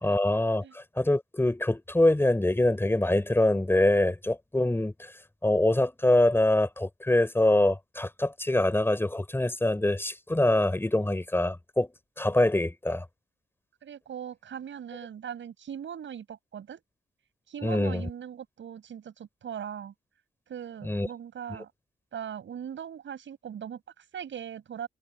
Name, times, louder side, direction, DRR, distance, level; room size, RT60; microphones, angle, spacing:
voice 1, 0.0-5.1 5.4-11.9 12.2-13.0 17.6-18.1 20.8-21.1, left 1 dB, 10° left, 4.2 m, -24 dB
voice 2, 13.8-16.8 17.5-19.9 20.5-21.7 22.1-24.9, right 8 dB, 85° right, 7.2 m, -40 dB
wide cardioid pair, 120°, 19 cm